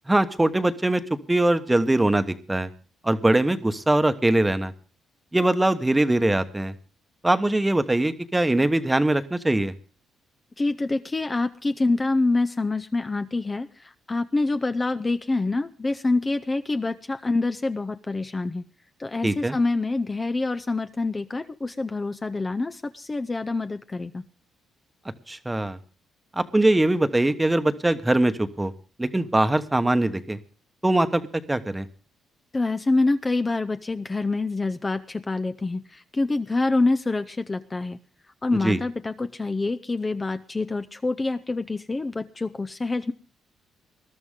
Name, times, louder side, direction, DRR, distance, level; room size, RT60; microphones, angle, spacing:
voice 1, 0.1-1.0 1.3-2.7 3.0-4.7 5.3-6.7 7.2-9.7 19.2-19.6 25.3-25.8 26.4-28.7 29.0-30.4 30.8-31.2 31.5-31.9 38.6-38.8, right 1 dB, 10° right, 10 dB, 1.1 m, -22 dB
voice 2, 10.6-18.6 19.0-24.2 32.5-38.0 38.4-43.1, left 3 dB, 25° left, 9 dB, 0.6 m, -26 dB
20.0 x 12.5 x 3.7 m, 0.37 s
cardioid pair, 90°, 0 cm